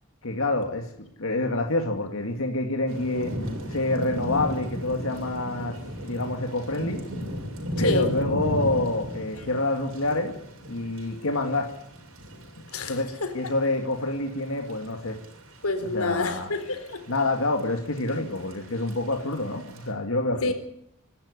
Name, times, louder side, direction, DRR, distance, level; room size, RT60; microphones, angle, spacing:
voice 1, 0.2-3.3 3.7-5.7 6.0-7.0 7.8-10.3 10.7-11.7 12.9-15.2 15.8-16.5 17.1-20.5, left 2 dB, 65° left, 3 dB, 2.4 m, -27 dB
Thunder / Rain, 2.9-19.9, equal, 70° right, 6.4 m, -36 dB
voice 2, 7.8-8.1 12.7-13.3 15.6-17.0 20.4-20.5, left 3 dB, 90° left, 9 dB, 4.1 m, -28 dB
25.5 x 13.0 x 10.0 m, 0.76 s
head